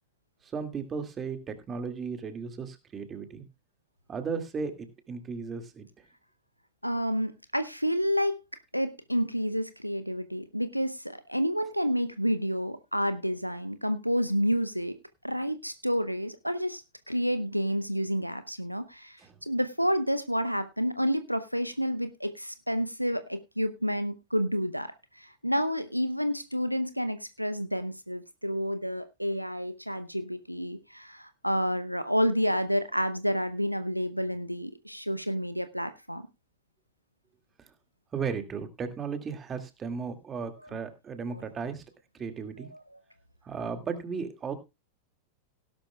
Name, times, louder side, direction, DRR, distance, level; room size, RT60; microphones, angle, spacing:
voice 1, 0.4-3.5 4.1-5.9 19.2-19.4 37.6-37.7 38.1-41.8 42.2-42.7 43.4-44.5, right 5 dB, 20° right, 7 dB, 2.1 m, -35 dB
voice 2, 6.8-8.4 8.7-15.0 15.2-36.3 41.3-41.4 42.6-42.8, equal, 90° right, 12 dB, 0.7 m, -29 dB
17.0 x 11.5 x 2.3 m, 0.25 s
figure-of-eight pair, 90°, 0 cm